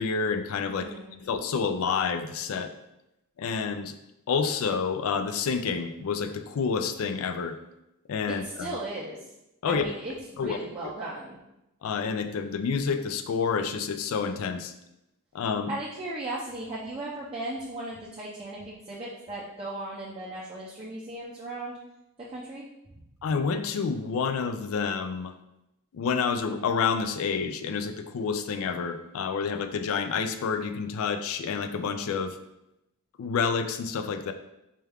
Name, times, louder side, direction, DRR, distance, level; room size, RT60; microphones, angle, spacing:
voice 1, 0.0-0.9 1.2-2.7 3.4-4.0 4.3-7.6 8.1-8.8 9.6-9.9 10.4-10.6 11.8-14.7 15.3-15.7 23.2-25.3 25.9-32.3 33.2-34.3, left 5 dB, 65° left, 8 dB, 0.3 m, -28 dB
voice 2, 0.7-1.2 8.3-9.3 9.7-11.4 15.7-21.8 22.3-22.6, right 2 dB, 25° right, -7 dB, 0.5 m, -37 dB
4.3 x 2.3 x 3.4 m, 0.88 s
head